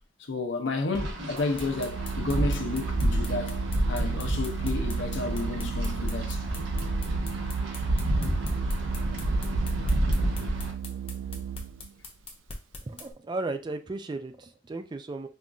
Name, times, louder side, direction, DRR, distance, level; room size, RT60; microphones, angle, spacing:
voice 1, 0.3-6.4, left 3 dB, 70° left, 0.6 m, -31 dB
Wind, 1.0-10.7, right 1 dB, 70° right, 1.0 m, -29 dB
sound 1, 1.4-13.1, left 3 dB, 30° left, 0.7 m, -42 dB
Organ, 1.6-11.9, right 8 dB, 90° right, 0.4 m, -35 dB
voice 2, 12.8-15.3, right 2 dB, 25° right, 0.3 m, -35 dB
5.4 x 2.5 x 2.3 m
head